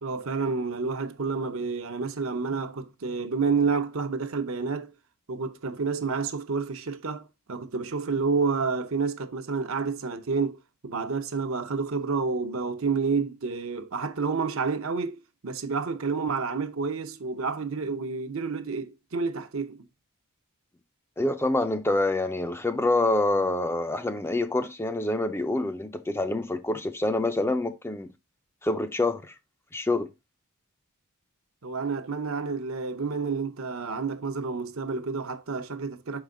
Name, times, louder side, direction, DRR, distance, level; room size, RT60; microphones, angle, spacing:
voice 1, 0.0-4.9 5.3-19.9 31.6-36.2, right 4 dB, 65° right, 0.8 m, -29 dB
voice 2, 21.2-28.1 28.6-29.3 29.7-30.1, left 2 dB, 10° left, 0.4 m, -26 dB
6.1 x 4.8 x 3.8 m
head